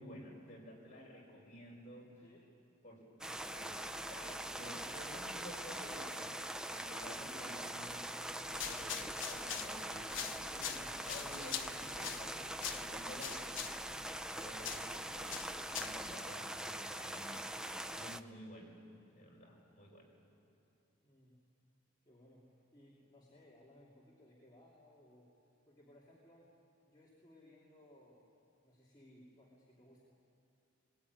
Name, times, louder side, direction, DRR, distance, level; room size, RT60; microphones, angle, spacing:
voice 1, 0.0-2.1 2.8-3.8 4.1-6.4 6.7-8.0 8.6-13.4 14.3-17.5 17.9-18.8 19.1-20.1, equal, 40° left, -2 dB, 5.8 m, -53 dB
voice 2, 2.2-2.5 21.0-21.4 22.0-25.3 25.7-26.5 26.9-28.3 28.6-30.0, left 1 dB, 25° left, -6 dB, 3.1 m, -62 dB
sound 1, 3.2-18.2, right 1 dB, 5° right, 0.5 m, -43 dB
sound 2, 8.5-16.1, left 8 dB, 75° left, 1.2 m, -45 dB
21.0 x 21.0 x 9.7 m, 2.6 s
head